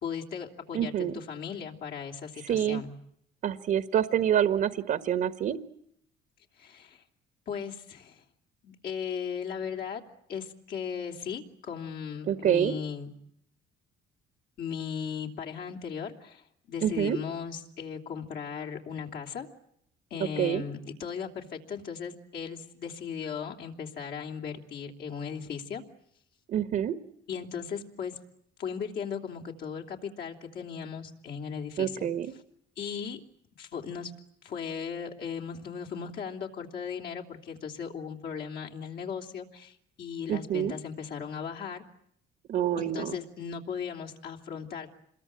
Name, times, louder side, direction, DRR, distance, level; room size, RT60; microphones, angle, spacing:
voice 1, 0.0-2.9 6.6-7.0 7.5-8.2 8.6-10.0 10.3-13.1 14.6-19.5 20.1-25.8 27.3-28.2 28.6-32.1 32.8-33.2 33.6-34.1 34.4-41.8 42.8-45.0, left 7 dB, 65° left, 1 dB, 3.2 m, -37 dB
voice 2, 0.7-1.1 2.5-2.8 3.4-5.6 12.3-12.7 16.8-17.2 20.4-20.6 26.5-26.9 31.8-32.3 40.3-40.7 42.5-43.1, right 10 dB, 60° right, 11 dB, 1.5 m, -27 dB
27.5 x 22.0 x 8.8 m, 0.72 s
cardioid pair, 110°, 17 cm